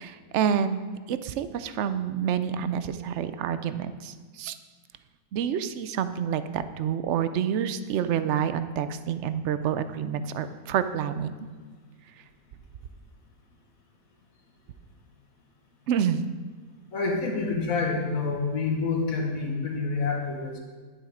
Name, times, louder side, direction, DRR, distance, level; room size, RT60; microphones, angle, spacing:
voice 1, 0.0-4.6 5.3-11.5 15.9-16.2, right 8 dB, 65° right, 12 dB, 0.7 m, -28 dB
voice 2, 16.9-20.6, left 4 dB, 60° left, 0 dB, 2.0 m, -27 dB
11.0 x 7.3 x 5.0 m, 1.5 s
omnidirectional pair, 1.7 m